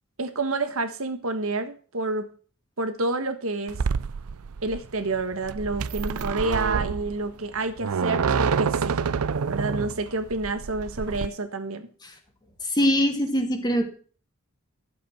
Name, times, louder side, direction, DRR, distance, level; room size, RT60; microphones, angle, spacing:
voice 1, 0.2-2.3 2.8-3.8 4.6-9.0 9.5-11.9, right 2 dB, 70° right, 1.5 m, -29 dB
sound 1, 3.7-11.3, right 5 dB, 90° right, 0.5 m, -28 dB
voice 2, 12.6-13.9, equal, 20° left, 2.2 m, -22 dB
12.0 x 7.9 x 6.1 m
head